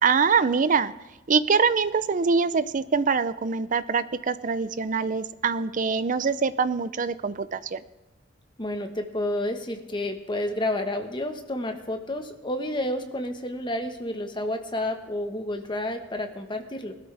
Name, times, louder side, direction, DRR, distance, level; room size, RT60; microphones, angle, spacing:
voice 1, 0.0-0.9 1.3-7.8, right 5 dB, 45° right, 15 dB, 0.5 m, -24 dB
voice 2, 8.6-16.9, left 1 dB, 25° left, 5 dB, 1.3 m, -30 dB
19.5 x 13.0 x 3.4 m, 1.1 s
head